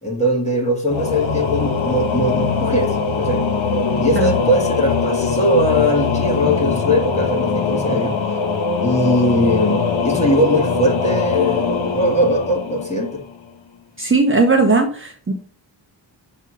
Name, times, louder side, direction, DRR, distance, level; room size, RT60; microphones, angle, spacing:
voice 1, 0.0-3.4 4.0-8.2 8.8-13.2, left 1 dB, 15° left, 1.9 m, -20 dB
Singing / Musical instrument, 0.9-13.4, left 4 dB, 75° left, 1.2 m, -21 dB
voice 2, 14.0-15.3, right 3 dB, 25° right, 1.0 m, -17 dB
6.7 x 3.7 x 6.3 m
wide cardioid pair, 140°, 46 cm